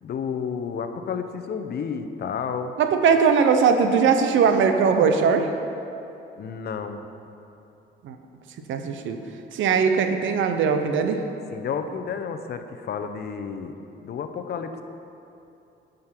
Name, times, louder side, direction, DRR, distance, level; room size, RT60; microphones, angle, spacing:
voice 1, 0.0-2.7 6.4-7.0 11.5-13.7 14.0-14.8, left 6 dB, 55° left, 8 dB, 0.7 m, -31 dB
voice 2, 2.8-5.5 8.0-8.2 8.7-9.2 9.5-11.2, right 6 dB, 75° right, 6 dB, 0.7 m, -20 dB
9.6 x 5.2 x 5.9 m, 2.8 s
cardioid pair, 90°, 20 cm